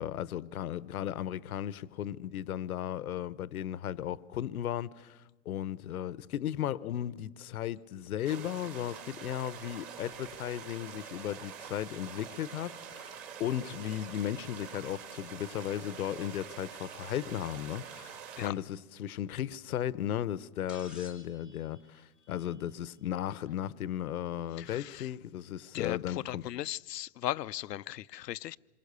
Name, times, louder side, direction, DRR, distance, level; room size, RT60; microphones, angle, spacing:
voice 1, 0.0-26.5, left 11 dB, 65° left, 0.9 m, -36 dB
sound 1, 8.2-18.5, right 7 dB, 25° right, 2.4 m, -46 dB
sound 2, 20.7-23.0 24.6-24.7 25.8-25.9, left 3 dB, ahead, 0.8 m, -54 dB
voice 2, 24.6-25.1 25.7-28.6, left 13 dB, 90° left, 0.7 m, -37 dB
27.0 x 22.5 x 6.8 m
hypercardioid pair, 170°, 48 cm